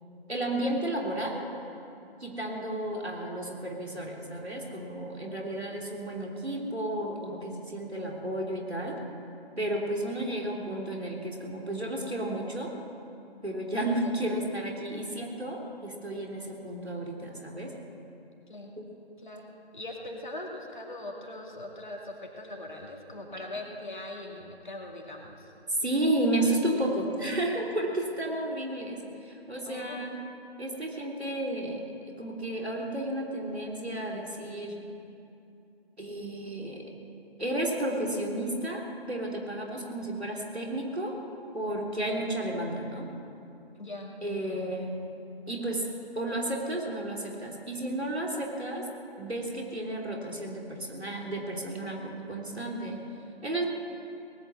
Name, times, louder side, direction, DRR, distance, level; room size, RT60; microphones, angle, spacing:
voice 1, 0.3-1.4 2.2-9.0 9.6-12.7 13.4-17.7 18.8-18.9 25.8-30.2 30.6-31.8 32.2-34.8 36.0-36.9 37.4-41.2 41.5-43.1 44.2-44.9 45.5-45.9 46.1-48.9 49.2-53.0 53.4-53.7, right 1 dB, 80° right, -1 dB, 3.1 m, -32 dB
voice 2, 19.7-25.5 29.7-30.0 43.8-44.6, left 1 dB, 45° left, 0 dB, 2.4 m, -41 dB
19.0 x 9.2 x 7.7 m, 2.7 s
figure-of-eight pair, 160°, 32 cm